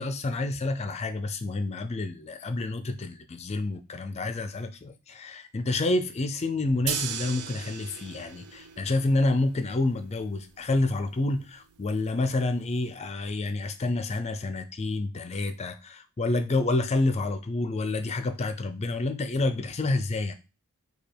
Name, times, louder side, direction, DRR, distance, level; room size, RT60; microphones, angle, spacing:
voice 1, 0.0-20.3, left 2 dB, 30° left, 10 dB, 0.4 m, -28 dB
sound 1, 6.9-12.9, right 8 dB, 80° right, 0.5 m, -39 dB
5.2 x 2.3 x 4.4 m, 0.30 s
head